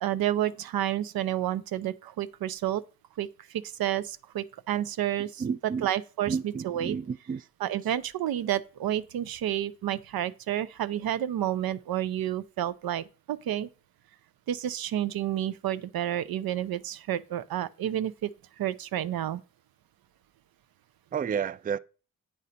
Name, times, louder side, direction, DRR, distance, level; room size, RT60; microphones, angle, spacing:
voice 1, 0.0-2.8 3.2-7.0 7.6-13.7 14.5-18.3 18.6-19.4, right 12 dB, 90° right, 0.6 m, -30 dB
voice 2, 5.4-5.9 6.3-7.4 21.1-21.8, right 6 dB, 25° right, 0.3 m, -31 dB
8.8 x 4.2 x 5.1 m
cardioid pair, 65°, 35 cm